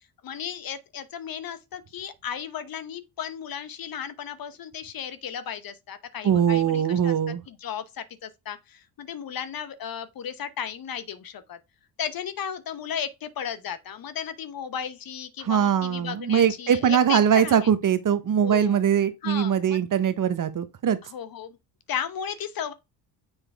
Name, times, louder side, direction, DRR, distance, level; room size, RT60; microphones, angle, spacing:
voice 1, 0.2-11.6 12.0-17.7 18.4-18.8 19.2-19.8 21.1-21.6 21.9-22.7, left 8 dB, 45° left, 1.0 m, -35 dB
voice 2, 6.2-7.4 15.4-21.0, right 8 dB, 40° right, 0.9 m, -22 dB
7.2 x 4.9 x 3.4 m
hypercardioid pair, 60°, 50 cm